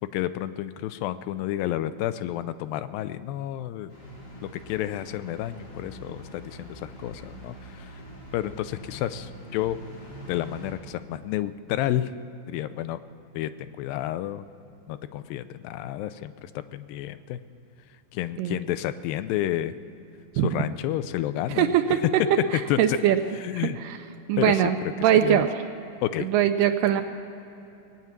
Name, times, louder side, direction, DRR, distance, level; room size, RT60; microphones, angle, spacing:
voice 1, 0.1-3.9 4.4-7.9 8.3-9.8 10.3-12.1 12.5-13.0 13.4-14.5 14.9-17.4 18.1-19.7 20.4-21.7 22.7-23.0 23.4-23.8 24.4-24.7 25.2-25.5 26.0-26.3, left 13 dB, 80° left, 13 dB, 2.2 m, -30 dB
sound 1, 3.9-10.7, right 1 dB, 60° left, 6.2 m, -44 dB
voice 2, 21.5-22.0 22.5-23.2 23.5-24.0 24.3-25.5 26.2-27.0, right 10 dB, 80° right, 7 dB, 2.1 m, -22 dB
20.5 x 9.4 x 7.4 m, 2.9 s
omnidirectional pair, 4.2 m